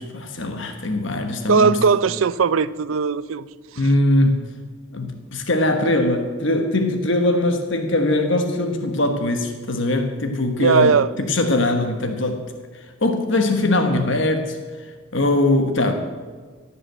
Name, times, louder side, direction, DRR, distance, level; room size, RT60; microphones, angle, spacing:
voice 1, 0.0-1.8 3.8-4.5 4.9-12.4 13.0-14.6 15.1-15.9, left 1 dB, 60° left, 5 dB, 1.3 m, -21 dB
voice 2, 1.5-3.5 10.6-11.1, right 5 dB, 70° right, 17 dB, 0.5 m, -18 dB
17.0 x 6.2 x 7.8 m, 1.5 s
head